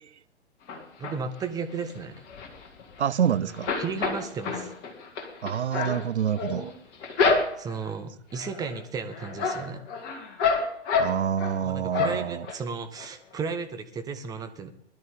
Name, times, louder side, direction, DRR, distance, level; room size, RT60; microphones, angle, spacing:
sound 1, 0.7-1.4 1.9-3.2 3.5-7.9 8.3-8.8 9.1-11.6 11.9-12.6 13.0-13.1 13.3-13.4, left 4 dB, 30° left, 2.9 m, -28 dB
voice 1, 1.0-2.2 3.4-3.5 3.8-4.7 6.5-6.7 7.6-9.8 11.6-14.7, right 5 dB, 10° right, 1.0 m, -34 dB
voice 2, 3.0-3.7 5.4-6.7 11.0-12.5, right 8 dB, 75° right, 0.5 m, -27 dB
20.0 x 12.0 x 4.0 m
figure-of-eight pair, 120°, 35 cm